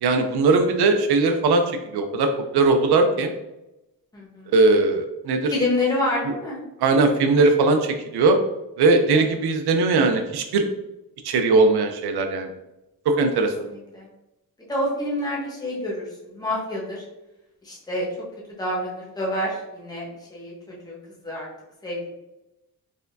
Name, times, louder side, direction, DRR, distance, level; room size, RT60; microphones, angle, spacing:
voice 1, 0.0-3.3 4.5-5.5 6.8-8.4 8.8-10.6 11.2-12.5 13.1-13.5, right 3 dB, 85° right, 5 dB, 0.6 m, -19 dB
voice 2, 4.1-4.5 5.5-6.6 9.1-9.2 13.6-14.1 14.7-17.0 17.6-18.1 18.6-21.0 21.2-21.5 21.8-22.0, left 1 dB, 10° left, -5 dB, 1.0 m, -28 dB
4.3 x 3.5 x 2.6 m, 0.93 s
wide cardioid pair, 150°, 38 cm